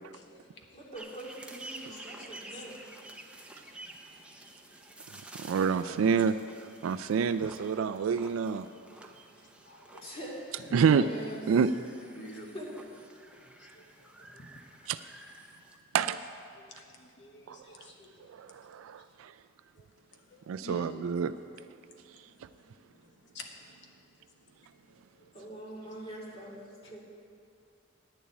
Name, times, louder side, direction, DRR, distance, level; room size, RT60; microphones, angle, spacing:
voice 1, 0.1-0.8 1.8-2.7 4.1-4.6 5.3-5.4 7.3-7.4 9.4-10.1 12.1-12.5 13.4-14.5 16.5-18.3 19.8-19.9 20.1-21.1 22.4-23.1 23.3-23.5 24.9-25.3, left 2 dB, 60° left, 2 dB, 1.2 m, -50 dB
voice 2, 0.7-2.8 5.7-6.1 10.0-10.6 10.9-11.7 12.5-12.8 25.3-27.0, right 1 dB, 30° left, -4 dB, 2.4 m, -43 dB
sound 1, 0.9-15.8, right 2 dB, 5° right, 0.7 m, -50 dB
voice 3, 5.4-6.3 6.8-8.7 10.7-11.0 11.5-11.7 14.9-15.0 15.9-16.2 17.5-17.6 18.4-19.3 20.5-21.3, right 6 dB, 90° right, 12 dB, 0.3 m, -27 dB
10.0 x 7.1 x 8.6 m, 2.4 s
head